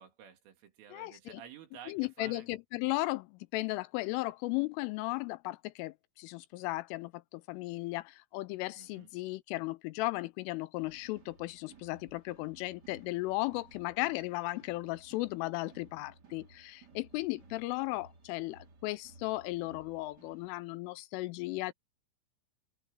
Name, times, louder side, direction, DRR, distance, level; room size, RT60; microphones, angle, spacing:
voice 1, 0.0-2.5 8.8-9.1, right 8 dB, 75° right, 5.3 m, -51 dB
voice 2, 0.9-1.4 1.9-21.7, left 20 dB, 85° left, 3.0 m, -36 dB
sound 1, 10.8-20.5, right 4 dB, 30° right, 2.2 m, -59 dB
open air
omnidirectional pair, 5.9 m